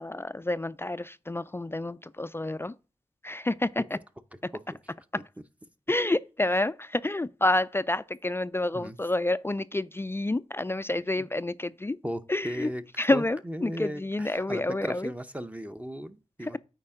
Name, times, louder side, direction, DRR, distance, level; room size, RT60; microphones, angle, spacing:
voice 1, 0.0-2.7 3.2-3.8 5.9-12.0 12.3-12.7 13.0-15.1 16.4-16.6, left 2 dB, 20° left, 0.3 m, -29 dB
voice 2, 12.0-12.8 13.1-16.6, equal, 10° right, 0.7 m, -36 dB
8.7 x 4.8 x 3.6 m
wide cardioid pair, 65°, 12 cm